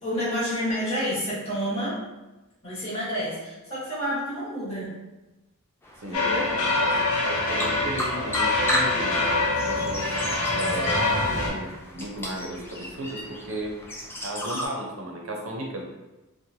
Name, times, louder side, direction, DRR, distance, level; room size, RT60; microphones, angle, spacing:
voice 1, 0.0-2.0 2.6-4.9 6.1-6.5 9.6-9.9, equal, 30° left, -9 dB, 1.2 m, -29 dB
sound 1, 5.8-14.7, equal, 10° left, 0.3 m, -35 dB
sound 2, 6.1-11.5, left 2 dB, 90° left, 0.6 m, -25 dB
voice 2, 6.8-10.2 10.5-11.0 11.3-13.8 14.2-15.8, right 1 dB, 65° right, 0 dB, 0.6 m, -35 dB
3.0 x 2.1 x 2.6 m, 1.1 s
head